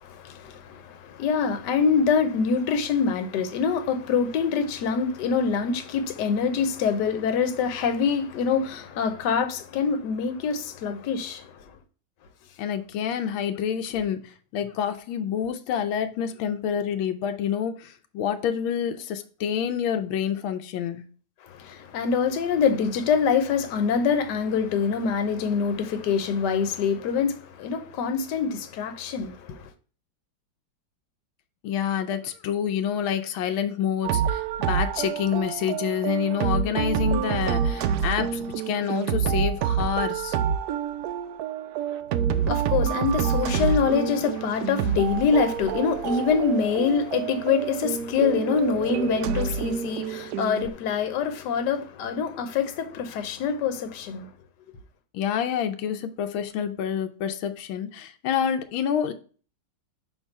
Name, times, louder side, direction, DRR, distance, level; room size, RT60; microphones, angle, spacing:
voice 1, 0.0-11.5 21.5-29.7 42.3-54.3, left 6 dB, 65° left, 1.3 m, -25 dB
voice 2, 12.6-21.0 31.6-40.4 55.1-59.1, left 8 dB, 90° left, 1.5 m, -28 dB
sound 1, 34.0-50.7, right 8 dB, 80° right, 0.9 m, -27 dB
5.4 x 3.7 x 5.3 m
omnidirectional pair, 2.2 m